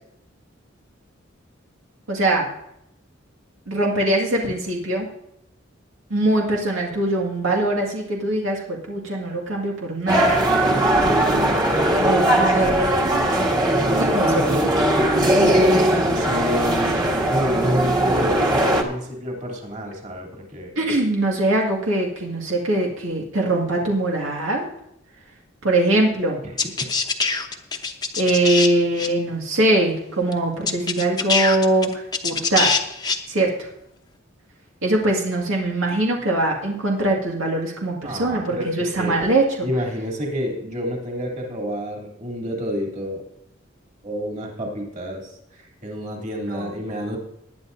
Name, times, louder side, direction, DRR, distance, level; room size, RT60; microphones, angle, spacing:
voice 1, 2.1-2.5 3.7-5.1 6.1-10.4 12.0-12.9 14.0-14.7 20.8-24.7 25.6-26.4 28.2-32.7 33.3-33.7 34.8-39.7 46.5-46.7, right 2 dB, 90° right, -1 dB, 2.1 m, -22 dB
sound 1, 10.1-18.8, right 1 dB, 20° right, 1.6 m, -19 dB
voice 2, 13.8-14.7 15.9-20.7 26.8-26.9 38.0-39.2 39.6-43.2 44.0-47.2, equal, 40° right, 0 dB, 3.1 m, -29 dB
sound 2, 26.6-28.7 29.0-29.1 30.3-30.4 30.7-33.2, left 4 dB, 20° left, 0.9 m, -23 dB
20.0 x 10.0 x 2.7 m, 0.80 s
head